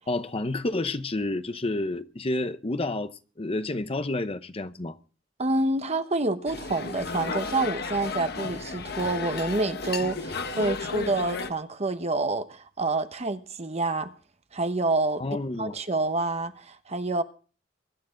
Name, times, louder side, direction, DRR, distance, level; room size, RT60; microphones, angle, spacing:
voice 1, 0.1-5.0 15.2-15.8, left 2 dB, 30° left, 0.8 m, -30 dB
voice 2, 5.4-14.1 14.5-15.2 15.6-17.2, right 2 dB, 35° right, 1.1 m, -27 dB
sound 1, 6.5-11.5, left 4 dB, 60° left, 1.2 m, -33 dB
23.0 x 11.5 x 3.8 m
head